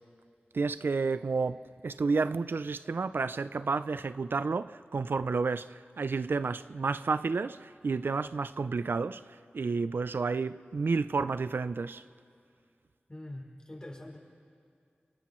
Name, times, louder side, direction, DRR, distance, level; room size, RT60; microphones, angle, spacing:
voice 1, 0.5-9.2 9.5-12.0, right 4 dB, 75° right, 0.4 m, -31 dB
voice 2, 13.1-14.2, left 1 dB, 25° left, 5.7 m, -44 dB
30.0 x 29.0 x 3.1 m
wide cardioid pair, 60°, 4 cm